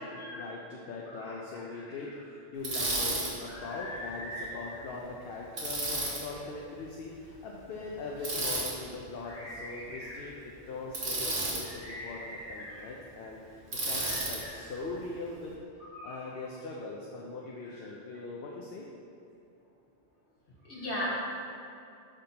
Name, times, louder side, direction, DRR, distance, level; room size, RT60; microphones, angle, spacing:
voice 1, 0.0-15.5 16.0-18.9, left 3 dB, 65° left, -2 dB, 0.8 m, -41 dB
Bicycle, 2.6-3.3 5.6-6.2 8.2-8.7 10.9-11.6 13.7-14.4, right 2 dB, 70° right, 1.5 m, -31 dB
voice 2, 3.5-4.8 9.2-10.3 11.7-12.9 14.0-14.5 15.9-16.2 20.7-21.1, left 1 dB, 90° left, -7 dB, 1.8 m, -41 dB
10.0 x 3.7 x 2.8 m, 2.5 s
omnidirectional pair, 1.1 m